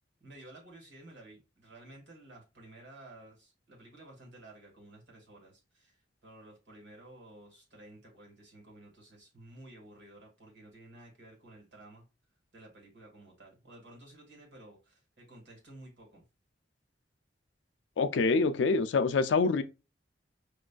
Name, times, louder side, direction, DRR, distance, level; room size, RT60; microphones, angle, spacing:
voice 1, 0.2-12.0 12.5-16.2, right 1 dB, 70° right, 1.6 m, -53 dB
voice 2, 18.0-19.6, left 4 dB, 75° left, 0.4 m, -26 dB
5.2 x 2.4 x 2.2 m
head